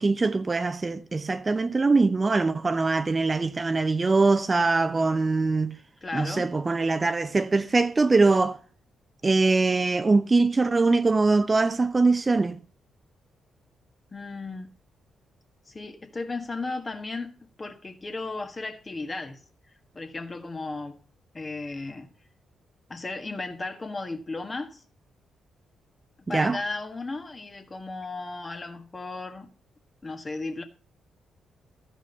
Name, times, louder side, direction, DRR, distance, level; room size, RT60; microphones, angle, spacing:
voice 1, 0.0-5.8 6.1-8.6 9.2-12.6 26.3-26.6, right 3 dB, 30° right, 0.7 m, -22 dB
voice 2, 6.0-6.5 14.1-14.7 15.7-17.3 17.6-19.4 19.9-21.0 21.3-22.1 22.9-24.8 26.3-29.5 30.0-30.6, left 3 dB, 35° left, 1.6 m, -35 dB
13.5 x 5.1 x 5.4 m
hypercardioid pair, 40°, 0 cm